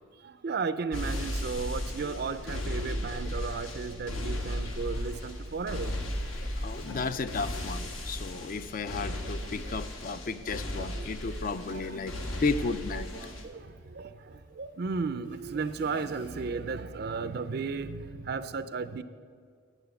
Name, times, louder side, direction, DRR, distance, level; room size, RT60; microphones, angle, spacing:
voice 1, 0.2-6.0 8.9-9.0 9.6-9.8 10.1-10.3 10.8-11.1 11.7-11.9 12.9-19.0, right 4 dB, 50° right, 12 dB, 0.4 m, -35 dB
sound 1, 0.9-13.4, left 1 dB, 85° left, 1.4 m, -36 dB
sound 2, 5.6-7.9 8.2-11.1 11.4-14.4 14.7-14.8 15.2-16.7 17.1-17.9, equal, 60° left, 1.6 m, -52 dB
voice 2, 6.4-13.1, left 4 dB, 45° left, 12 dB, 0.4 m, -33 dB
9.0 x 7.6 x 7.8 m, 2.1 s
head